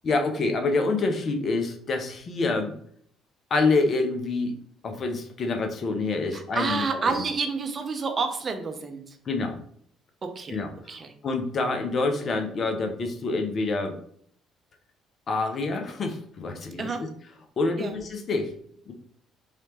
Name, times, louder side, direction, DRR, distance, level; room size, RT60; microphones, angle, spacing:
voice 1, 0.0-2.7 3.5-4.5 4.8-7.1 9.3-9.6 10.5-10.7 11.2-14.0 15.3-16.9 17.6-18.5 18.9-19.0, left 3 dB, 50° left, 5 dB, 0.6 m, -26 dB
voice 2, 6.3-9.2 10.2-10.6 10.9-11.1 16.8-17.1 17.8-17.9, right 4 dB, 40° right, 7 dB, 0.5 m, -29 dB
3.2 x 2.8 x 2.9 m, 0.62 s
hypercardioid pair, 50°, 0 cm